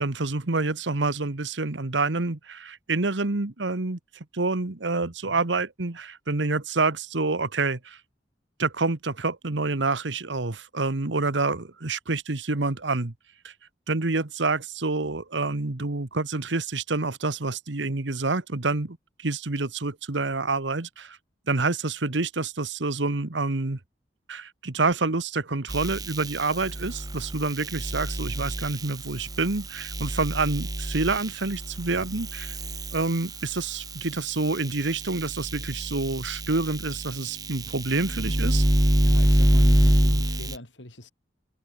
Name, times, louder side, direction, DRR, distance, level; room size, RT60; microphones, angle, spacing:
voice 1, 0.0-4.0 4.3-8.0 8.6-13.1 13.4-13.5 13.9-21.2 21.5-23.8 24.3-32.5 32.9-38.6, right 3 dB, 90° right, 1.4 m, -27 dB
sound 1, 25.7-34.0 34.5-40.6, right 1 dB, 20° right, 1.8 m, -26 dB
voice 2, 39.0-41.1, left 1 dB, 90° left, 6.3 m, -41 dB
head